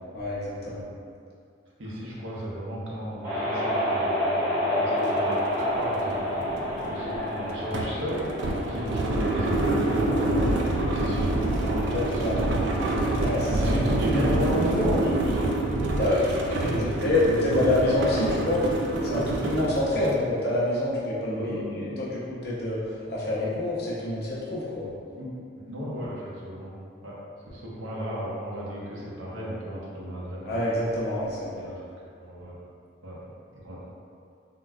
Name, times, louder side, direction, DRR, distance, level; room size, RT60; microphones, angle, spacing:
voice 1, 0.1-0.8 11.9-12.4 13.2-13.7 16.0-16.3 16.6-18.6 19.1-22.8 23.1-24.9 30.4-31.7, left 1 dB, 55° left, -7 dB, 0.7 m, -27 dB
voice 2, 1.8-9.6 9.9-13.2 13.5-17.6 18.7-19.4 19.9-20.3 21.2-22.0 25.1-26.8 27.0-27.2 27.5-30.6 31.6-31.8 32.2-32.6 33.0-33.2 33.6-33.8, equal, 90° right, -6 dB, 0.7 m, -34 dB
sound 1, 3.2-13.7, equal, 15° right, 0.9 m, -30 dB
sound 2, 5.0-5.1 5.5-20.2, right 2 dB, 65° right, 0.3 m, -27 dB
3.7 x 2.2 x 2.4 m, 2.3 s
head